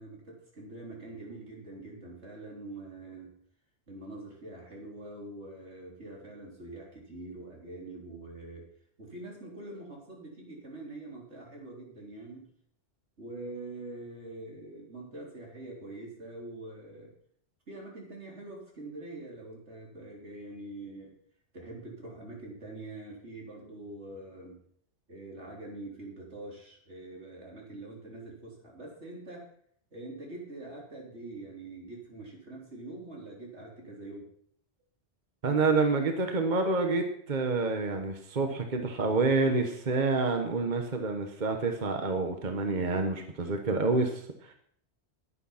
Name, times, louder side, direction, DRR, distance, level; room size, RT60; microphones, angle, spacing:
voice 1, 0.0-3.3 3.9-8.7 9.0-12.5 13.2-17.1 17.7-21.1 21.5-24.6 25.1-29.5 29.9-34.3, right 2 dB, 85° right, -2 dB, 3.9 m, -44 dB
voice 2, 35.4-44.5, right 3 dB, 45° right, 5 dB, 1.3 m, -28 dB
11.5 x 9.7 x 5.7 m, 0.65 s
omnidirectional pair, 1.1 m